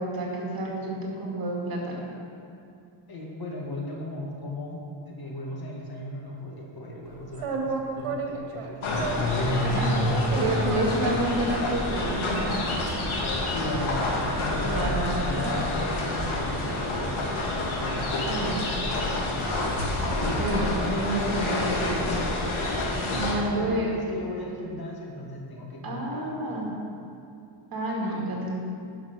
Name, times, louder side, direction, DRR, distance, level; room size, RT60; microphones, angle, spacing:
voice 1, 0.0-2.0 9.4-9.9 10.4-12.7 14.6-15.7 18.2-18.8 20.4-22.3 23.1-23.9 25.8-26.7 27.7-28.6, right 1 dB, 45° right, -2 dB, 2.4 m, -29 dB
voice 2, 3.1-10.7 13.5-17.4 17.6-19.5 23.4-26.3 26.5-26.7, left 2 dB, 45° left, -1 dB, 1.8 m, -37 dB
sound 1, 7.3-9.4 10.1-17.1, right 4 dB, 85° right, 1.4 m, -34 dB
sound 2, 8.8-23.3, left 1 dB, 70° left, 1.9 m, -28 dB
11.0 x 5.9 x 6.0 m, 2.5 s
cardioid pair, 105°, 49 cm